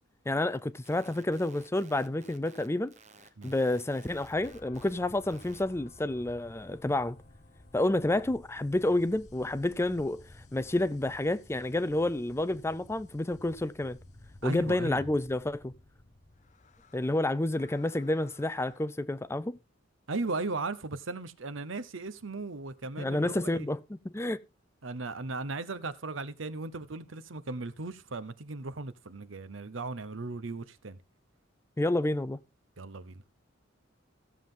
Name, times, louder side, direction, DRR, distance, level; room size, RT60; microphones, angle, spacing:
voice 1, 0.3-2.9 3.4-7.2 7.7-10.2 10.5-14.0 14.4-15.7 16.9-19.6 23.0-24.4 31.8-32.4, left 1 dB, 15° left, 0.5 m, -29 dB
sound 1, 0.6-4.9 5.2-5.6, right 3 dB, 35° right, 1.2 m, -56 dB
sound 2, 4.0-18.8, left 2 dB, 40° left, 0.9 m, -55 dB
voice 2, 14.4-15.1 20.1-23.7 24.8-31.0 32.8-33.2, right 3 dB, 80° right, 0.9 m, -37 dB
15.5 x 7.3 x 3.8 m
head